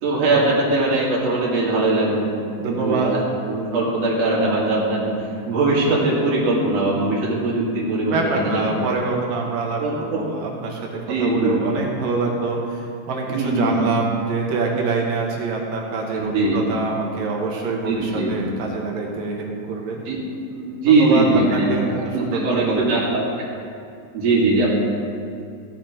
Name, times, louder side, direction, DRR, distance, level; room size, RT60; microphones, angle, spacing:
voice 1, 0.0-2.3 2.6-3.2 3.5-8.7 9.8-10.2 11.1-11.8 13.3-13.8 16.1-16.6 17.9-18.3 20.0-20.2 20.5-23.5 24.1-24.7, right 2 dB, 50° right, -5 dB, 3.3 m, -21 dB
voice 2, 2.6-3.1 8.1-20.0 20.8-21.3 21.5-23.1, right 4 dB, 75° right, 0 dB, 2.8 m, -25 dB
16.5 x 7.5 x 4.5 m, 2.4 s
omnidirectional pair, 4.1 m